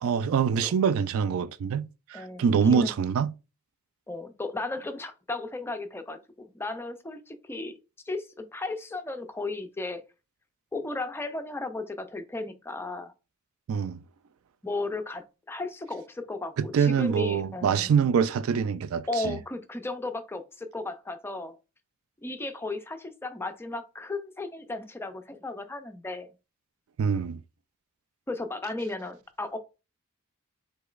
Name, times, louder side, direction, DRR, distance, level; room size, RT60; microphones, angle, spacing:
voice 1, 0.0-3.3 13.7-14.0 16.6-19.4 27.0-27.4, right 6 dB, 65° right, 0.3 m, -25 dB
voice 2, 2.1-2.9 4.1-7.7 8.1-10.0 10.7-13.1 14.6-18.1 19.1-21.6 22.2-26.3 28.3-29.6, left 2 dB, 10° left, 0.4 m, -35 dB
5.0 x 3.8 x 2.4 m
head